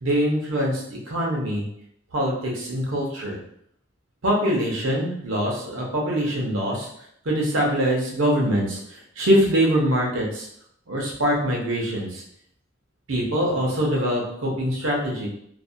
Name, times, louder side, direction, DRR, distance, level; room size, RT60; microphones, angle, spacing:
voice 1, 0.0-1.6 2.1-3.4 4.2-6.9 7.2-10.5 10.9-12.2 13.1-15.3, equal, 85° right, -2 dB, 0.7 m, -23 dB
2.5 x 2.1 x 2.6 m, 0.70 s
head